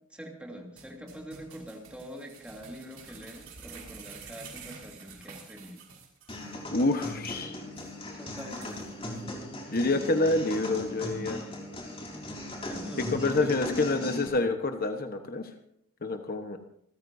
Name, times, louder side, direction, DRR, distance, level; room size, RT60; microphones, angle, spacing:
voice 1, 0.1-5.8 8.1-8.9 12.7-13.8, equal, 5° right, 0 dB, 2.9 m, -44 dB
sound 1, 0.8-6.5 6.8-6.9 7.3-7.4 7.8-7.9 8.4-9.2 9.7-9.8, right 5 dB, 70° right, 5.9 m, -49 dB
sound 2, 6.3-14.3, left 1 dB, 25° left, 4.1 m, -38 dB
voice 2, 6.7-7.6 9.7-11.4 13.0-15.5 16.0-16.6, left 2 dB, 45° left, 6 dB, 1.2 m, -27 dB
28.0 x 14.0 x 2.7 m, 0.67 s
head